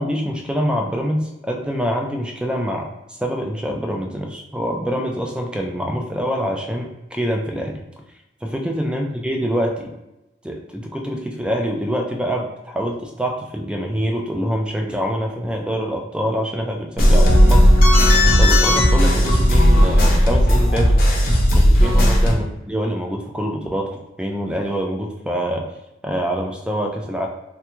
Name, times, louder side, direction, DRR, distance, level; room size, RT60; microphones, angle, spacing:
voice 1, 0.0-2.9 3.2-7.8 8.4-9.9 10.4-17.7 18.4-20.9 21.5-23.9 24.2-25.7 26.0-27.3, equal, 5° right, 2 dB, 0.3 m, -25 dB
sound 1, 17.0-22.3, equal, 50° left, 0.6 m, -14 dB
3.3 x 2.2 x 3.0 m, 0.93 s
head